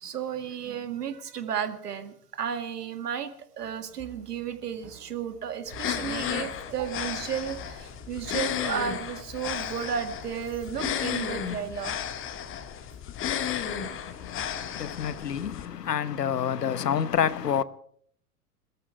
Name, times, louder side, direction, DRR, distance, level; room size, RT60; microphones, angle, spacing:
voice 1, 0.0-12.0 13.9-14.0, right 8 dB, 75° right, 2.0 m, -33 dB
sound 1, 3.6-8.6, right 8 dB, 15° right, 3.9 m, -52 dB
sound 2, 5.7-15.6, left 9 dB, 25° left, 1.6 m, -33 dB
voice 2, 14.0-17.6, left 8 dB, 80° left, 1.0 m, -28 dB
21.0 x 13.5 x 4.7 m
figure-of-eight pair, 100°, 48 cm